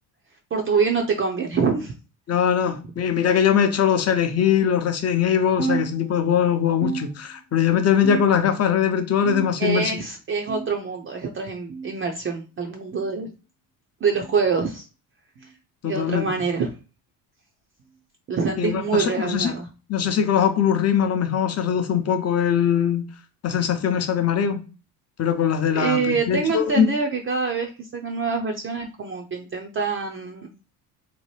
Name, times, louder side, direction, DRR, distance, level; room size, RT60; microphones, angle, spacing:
voice 1, 0.5-1.9 9.6-13.3 14.0-14.9 15.8-16.7 18.3-19.7 25.7-30.5, right 5 dB, 30° right, 0.5 m, -25 dB
voice 2, 2.3-9.9 15.8-16.3 18.6-19.5 19.9-23.0 23.4-24.6 25.2-26.9, left 8 dB, 35° left, 0.7 m, -21 dB
sound 1, 5.6-6.4 6.8-7.6 8.0-8.6 9.3-9.9 10.5-10.9 11.7-11.9 12.9-13.1 14.1-14.3 15.4-15.5 16.6-16.8 17.8-18.0 19.0-19.1 20.2-20.3, right 4 dB, 80° right, 0.8 m, -32 dB
2.9 x 2.1 x 3.2 m
supercardioid pair, 70°, 45 cm